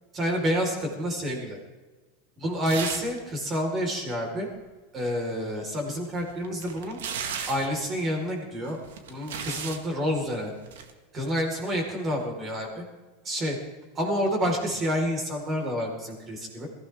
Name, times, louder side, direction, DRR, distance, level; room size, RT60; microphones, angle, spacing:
voice 1, 0.1-1.6 2.4-4.5 4.9-7.0 7.5-8.8 9.1-10.5 11.1-12.8 13.2-13.6 13.9-16.7, equal, 25° right, 1 dB, 4.5 m, -28 dB
sound 1, 2.7-3.2 3.5-3.6 5.9-7.8 8.7-9.8 10.6-10.9, right 7 dB, 85° right, 1.8 m, -35 dB
21.5 x 16.0 x 3.6 m, 1.3 s
supercardioid pair, 145°, 0 cm